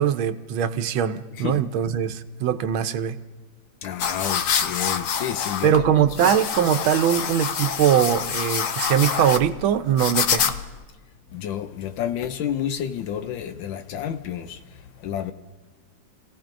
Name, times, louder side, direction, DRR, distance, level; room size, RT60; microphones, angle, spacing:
voice 1, 0.0-3.2 5.6-10.5, right 9 dB, 90° right, 1.5 m, -21 dB
voice 2, 3.8-6.1 11.3-15.3, left 9 dB, 80° left, 1.4 m, -30 dB
sound 1, 4.0-10.8, left 7 dB, 60° left, 0.8 m, -26 dB
30.0 x 16.5 x 2.6 m
omnidirectional pair, 2.2 m